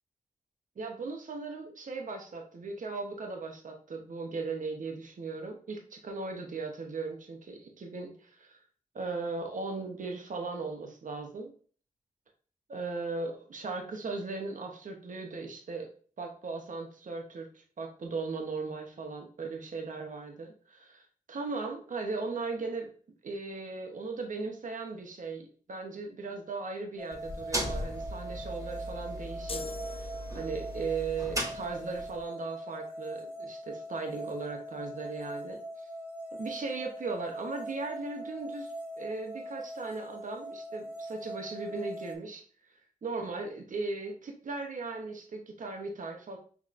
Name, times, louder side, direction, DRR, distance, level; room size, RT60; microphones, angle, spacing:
voice 1, 0.8-8.6 8.9-11.5 12.7-15.9 16.2-22.9 23.2-35.9 36.3-42.4 43.0-46.4, right 3 dB, 65° right, 3 dB, 0.8 m, -38 dB
sound 1, 27.0-42.2, equal, 5° right, 1.6 m, -42 dB
sound 2, 27.1-32.2, right 1 dB, 25° right, 1.7 m, -38 dB
sound 3, 29.5-30.8, left 3 dB, 40° left, 0.4 m, -42 dB
6.0 x 3.0 x 2.5 m, 0.43 s
cardioid pair, 45°, 14 cm